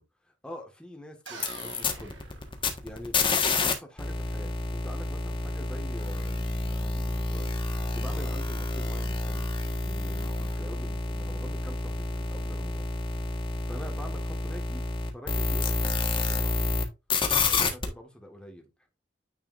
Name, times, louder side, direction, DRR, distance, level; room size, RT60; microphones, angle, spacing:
voice 1, 0.0-2.2 2.8-3.1 3.6-7.7 7.9-9.5 9.8-12.9 13.7-16.7 17.4-18.7, equal, 5° left, 1.5 m, -45 dB
sound 1, 1.3-3.7 4.0-16.8 17.1-17.9, left 3 dB, 30° left, 1.3 m, -29 dB
sound 2, 1.3-3.2, right 4 dB, 85° right, 2.1 m, -46 dB
9.3 x 4.8 x 2.5 m
head